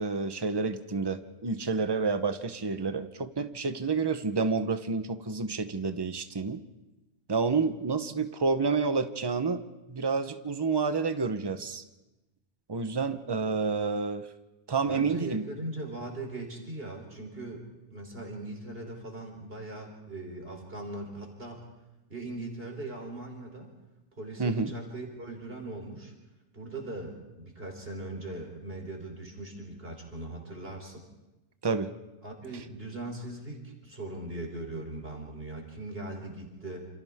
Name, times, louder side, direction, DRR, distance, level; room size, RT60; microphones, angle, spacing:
voice 1, 0.0-6.6 7.3-9.6 9.9-11.8 12.7-14.3 14.7-15.4 24.4-24.7 31.6-31.9, right 4 dB, 20° right, 9 dB, 0.9 m, -29 dB
voice 2, 14.9-17.7 17.9-21.7 22.1-23.7 24.2-26.1 26.5-31.1 32.2-36.9, right 2 dB, 50° right, 2 dB, 3.8 m, -40 dB
28.0 x 27.5 x 3.6 m, 1.0 s
omnidirectional pair, 1.3 m